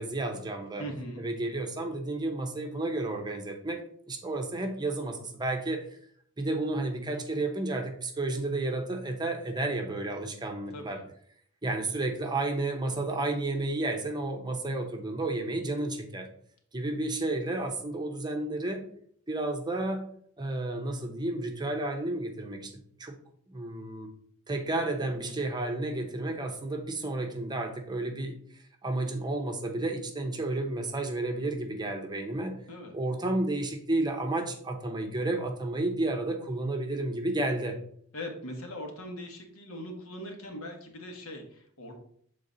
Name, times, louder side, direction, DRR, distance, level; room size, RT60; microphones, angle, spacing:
voice 1, 0.0-0.9 1.2-5.8 6.4-11.0 11.6-16.3 16.7-18.8 19.3-20.1 20.4-22.7 23.0-23.2 23.5-24.1 24.5-28.4 28.8-32.6 32.9-37.8, right 2 dB, 20° right, 3 dB, 0.8 m, -31 dB
voice 2, 0.8-1.3 10.7-11.0 32.7-32.9 38.1-41.9, equal, 70° left, 2 dB, 1.3 m, -40 dB
7.0 x 3.9 x 3.8 m, 0.62 s
head